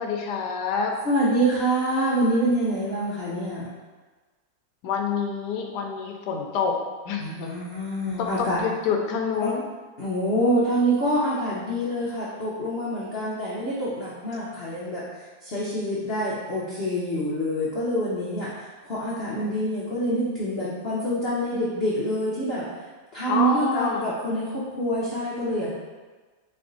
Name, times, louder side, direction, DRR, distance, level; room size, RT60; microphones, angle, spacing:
voice 1, 0.0-0.9 4.8-6.8 7.0-7.6 8.2-9.6 23.3-24.1, left 5 dB, 75° left, 2 dB, 1.2 m, -27 dB
voice 2, 1.0-3.6 7.2-8.6 9.4-9.5 10.0-15.0 15.4-22.7 23.1-25.7, right 1 dB, 55° left, -8 dB, 0.7 m, -26 dB
4.0 x 3.4 x 3.8 m, 1.3 s
omnidirectional pair, 2.0 m